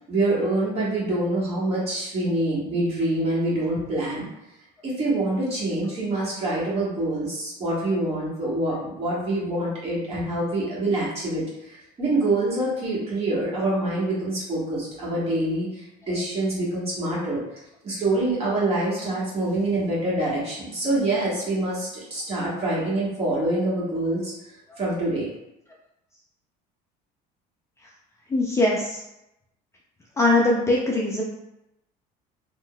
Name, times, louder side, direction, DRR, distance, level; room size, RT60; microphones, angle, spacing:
voice 1, 0.1-4.3 4.8-17.4 17.8-25.3, right 2 dB, 35° right, -7 dB, 1.5 m, -26 dB
voice 2, 28.3-29.0 30.2-31.2, left 2 dB, 15° left, -3 dB, 0.4 m, -21 dB
3.6 x 2.6 x 2.3 m, 0.89 s
cardioid pair, 125°, 18 cm